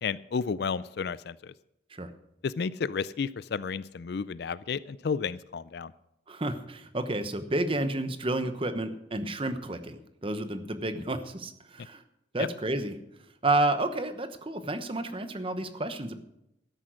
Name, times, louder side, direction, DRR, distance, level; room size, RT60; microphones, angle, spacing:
voice 1, 0.0-1.5 2.4-5.9 12.4-12.5, left 5 dB, 60° left, 18 dB, 0.4 m, -32 dB
voice 2, 6.3-12.0 12.3-13.0 13.4-16.2, right 2 dB, 30° right, 10 dB, 1.0 m, -30 dB
13.0 x 10.0 x 6.3 m, 0.81 s
head